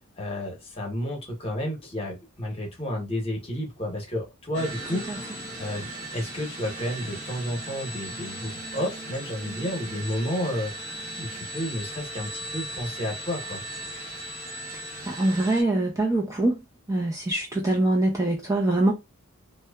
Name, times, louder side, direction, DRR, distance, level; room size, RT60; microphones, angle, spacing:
voice 1, 0.0-13.6, left 1 dB, 25° left, 0.9 m, -32 dB
sound 1, 4.5-15.6, right 1 dB, 35° right, 0.8 m, -37 dB
voice 2, 15.0-16.6 16.9-18.9, right 2 dB, 15° right, 0.4 m, -23 dB
2.8 x 2.1 x 2.3 m
head